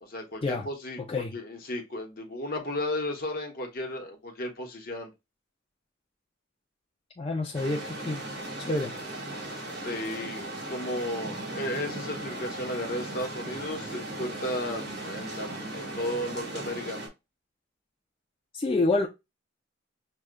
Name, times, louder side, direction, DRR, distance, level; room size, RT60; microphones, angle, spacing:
voice 1, 0.0-5.1 9.8-10.4 10.7-17.0, left 1 dB, 50° left, 0.9 m, -34 dB
voice 2, 7.2-8.2 8.6-9.0 18.5-19.1, left 2 dB, 30° left, 0.4 m, -28 dB
sound 1, 7.5-17.1, right 2 dB, 55° right, 1.5 m, -37 dB
6.1 x 2.3 x 2.2 m
head